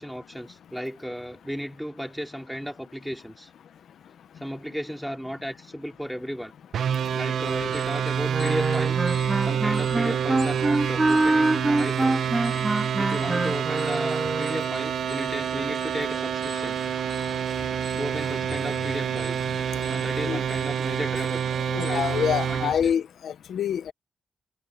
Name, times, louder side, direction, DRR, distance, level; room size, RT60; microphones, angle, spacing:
voice 1, 0.0-3.5 4.4-6.5 7.1-9.1 9.4-12.3 13.0-16.8 18.0-21.4 21.8-22.8, equal, ahead, 3.4 m, -35 dB
sound 1, 6.7-22.8, right 8 dB, 70° right, 1.1 m, -27 dB
sound 2, 7.4-23.0, left 5 dB, 40° left, 3.2 m, -44 dB
Wind instrument woodwind instrument, 8.3-14.7, right 2 dB, 15° right, 2.0 m, -25 dB
voice 2, 21.7-23.9, left 8 dB, 75° left, 1.0 m, -26 dB
wide cardioid pair, 150°, 0 cm